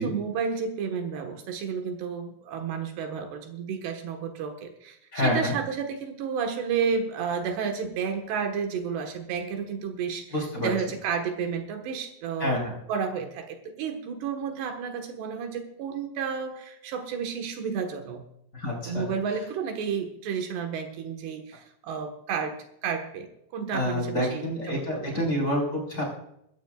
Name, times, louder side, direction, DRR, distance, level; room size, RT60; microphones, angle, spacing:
voice 1, 0.0-12.6 12.9-18.2 18.8-22.6 22.8-25.3, right 6 dB, 75° right, 4 dB, 3.6 m, -31 dB
voice 2, 5.1-5.5 10.3-10.7 12.4-12.7 18.5-19.0 23.7-26.0, left 1 dB, 20° left, -2 dB, 5.0 m, -27 dB
22.0 x 14.5 x 2.4 m, 0.75 s
omnidirectional pair, 4.9 m